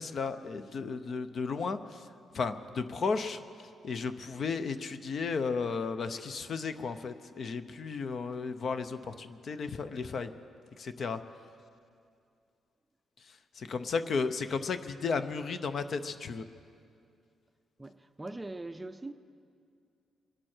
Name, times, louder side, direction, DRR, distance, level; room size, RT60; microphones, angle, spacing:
voice 1, 0.0-10.3 10.8-11.2 13.2-16.4, left 5 dB, 50° left, 0.7 m, -34 dB
voice 2, 17.8-19.1, right 2 dB, 15° right, 0.5 m, -41 dB
25.0 x 11.5 x 4.5 m
cardioid pair, 125°, 0 cm